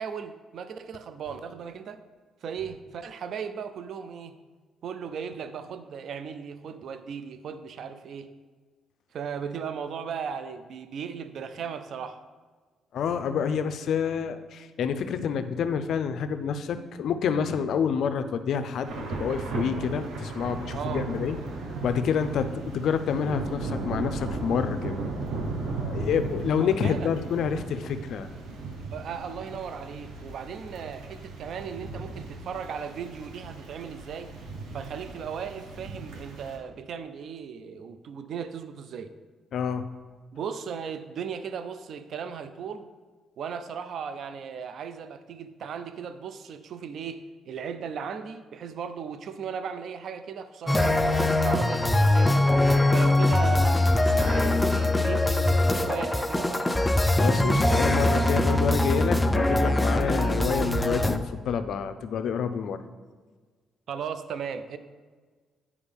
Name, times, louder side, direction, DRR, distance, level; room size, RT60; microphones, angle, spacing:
voice 1, 0.0-2.0 2.4-4.3 4.8-8.3 9.1-12.2 20.7-21.1 26.6-27.1 28.9-34.3 34.7-39.1 40.3-42.9 43.4-52.4 52.9-56.9 63.9-64.8, right 7 dB, 65° right, 10 dB, 0.5 m, -37 dB
voice 2, 12.9-21.4 21.8-25.0 25.8-28.3 39.5-39.8 57.2-62.8, left 7 dB, 70° left, 10 dB, 0.5 m, -28 dB
Thunder / Rain, 18.8-36.6, right 3 dB, 85° right, 1.0 m, -36 dB
sound 1, 50.7-61.2, left 1 dB, 10° left, 0.5 m, -22 dB
9.7 x 4.8 x 3.5 m, 1.4 s
cardioid pair, 90°, 0 cm